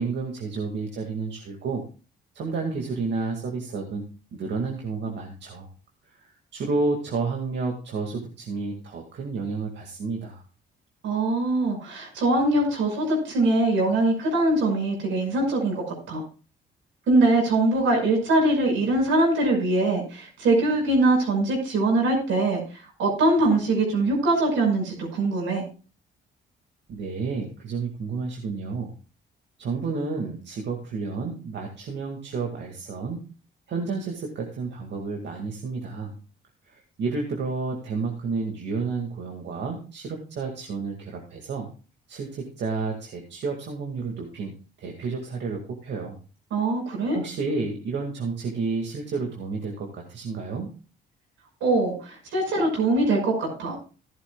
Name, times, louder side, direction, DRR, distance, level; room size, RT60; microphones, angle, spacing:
voice 1, 0.0-1.8 2.3-4.0 4.3-5.7 6.2-10.4 26.9-28.9 29.6-33.2 33.7-36.2 36.7-41.7 42.1-44.5 44.8-46.2 47.1-50.7, right 4 dB, 65° right, 1 dB, 2.1 m, -31 dB
voice 2, 11.0-16.2 17.1-22.6 23.0-25.6 46.5-47.2 51.6-53.7, right 2 dB, 85° right, 1 dB, 5.6 m, -22 dB
15.0 x 11.0 x 2.3 m, 0.35 s
cardioid pair, 90°, 20 cm